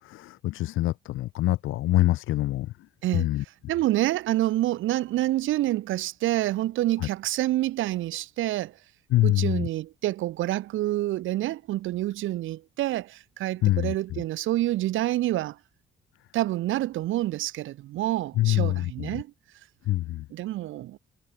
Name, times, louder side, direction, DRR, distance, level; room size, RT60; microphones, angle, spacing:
voice 1, 0.0-2.7 3.1-3.4 7.0-7.1 9.1-9.7 13.6-14.2 18.4-19.2 19.9-20.3, left 16 dB, 90° left, 2.4 m, -25 dB
voice 2, 3.7-8.7 9.2-15.6 16.3-19.3 20.3-21.0, right 15 dB, 85° right, 1.1 m, -27 dB
cardioid pair, 90°, 20 cm